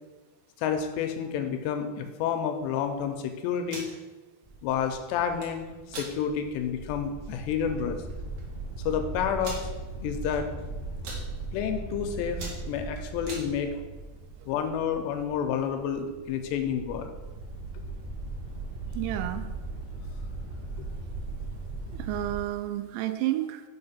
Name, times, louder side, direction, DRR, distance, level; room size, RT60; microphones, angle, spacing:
voice 1, 0.6-3.9 4.6-8.0 8.8-9.6 10.0-10.5 11.5-13.8 14.5-17.1, left 7 dB, 85° left, 6 dB, 2.7 m, -30 dB
sound 1, 3.6-3.9 5.2-5.5 5.9-6.1 6.6-6.7 7.1-7.3 8.1-8.2 8.4-8.5 9.4-9.7 10.3-10.6 10.9-11.2 11.8-12.0 12.3-13.5, right 3 dB, 60° right, 2.2 m, -40 dB
sound 2, 4.4-22.4, right 2 dB, 30° right, 1.5 m, -39 dB
voice 2, 18.9-19.5 21.9-23.6, right 14 dB, 85° right, 9 dB, 2.9 m, -30 dB
5.6 x 5.3 x 5.6 m, 1.2 s
omnidirectional pair, 5.1 m